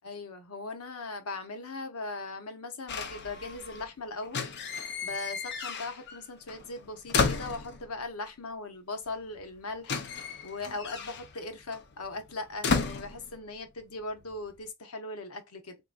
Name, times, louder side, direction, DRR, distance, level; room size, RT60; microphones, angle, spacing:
voice 1, 0.0-4.5 5.0-10.0 10.4-15.8, left 3 dB, 85° left, 0.8 m, -39 dB
sound 1, 2.9-3.9 4.2-6.2 6.5-8.1 9.1-9.2 9.4-13.8 14.1-14.6, left 4 dB, 50° left, 0.6 m, -33 dB
3.4 x 2.8 x 2.2 m
head